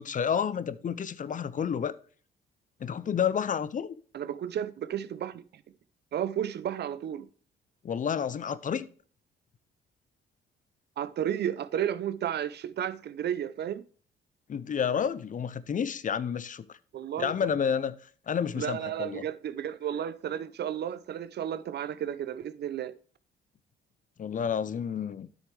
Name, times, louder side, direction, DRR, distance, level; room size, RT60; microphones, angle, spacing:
voice 1, 0.0-1.9 2.8-4.0 7.8-8.9 14.5-16.8 17.2-18.0 18.3-19.2 24.2-25.3, left 7 dB, 40° left, 0.6 m, -30 dB
voice 2, 4.1-5.6 6.1-7.3 11.0-13.8 16.9-17.3 18.6-22.9, right 10 dB, 55° right, 0.6 m, -33 dB
9.3 x 6.5 x 3.2 m
cardioid pair, 90°, 20 cm